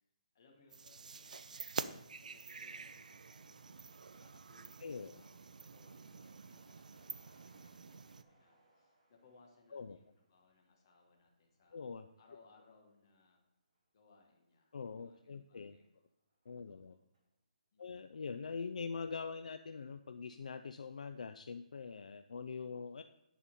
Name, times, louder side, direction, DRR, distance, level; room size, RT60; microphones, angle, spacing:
voice 1, 0.3-1.8 2.2-11.8 12.2-13.4 13.9-16.0 16.7-17.0 17.7-18.0, left 3 dB, 30° left, 1 dB, 1.4 m, -68 dB
sound 1, 0.7-8.2, right 5 dB, 70° right, 0.4 m, -48 dB
Truck, 2.2-17.3 17.7-17.8 18.0-18.9 19.2-19.3 19.6-20.0, right 2 dB, 40° right, 3.2 m, -76 dB
voice 2, 4.8-5.2 9.7-10.0 11.7-12.1 14.7-15.8 16.5-17.0 17.8-23.0, left 5 dB, 65° left, 9 dB, 0.4 m, -43 dB
9.9 x 4.2 x 5.2 m, 0.85 s
hypercardioid pair, 175°, 4 cm